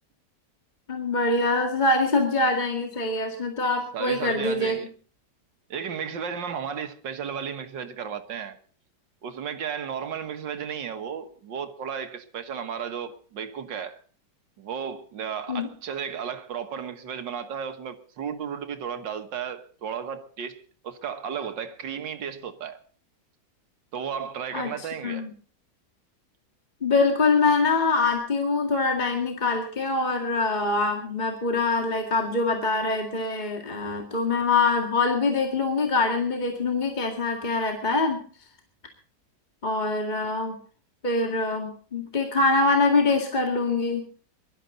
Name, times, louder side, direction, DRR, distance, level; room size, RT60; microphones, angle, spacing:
voice 1, 0.9-4.8 15.5-15.7 24.5-25.3 26.8-38.2 39.6-40.6 41.0-44.0, left 3 dB, 25° left, 2.2 m, -24 dB
voice 2, 3.9-4.9 5.7-8.6 9.2-14.0 14.6-22.8 23.9-25.3, right 7 dB, 90° right, 2.0 m, -34 dB
22.0 x 12.5 x 3.9 m
omnidirectional pair, 1.9 m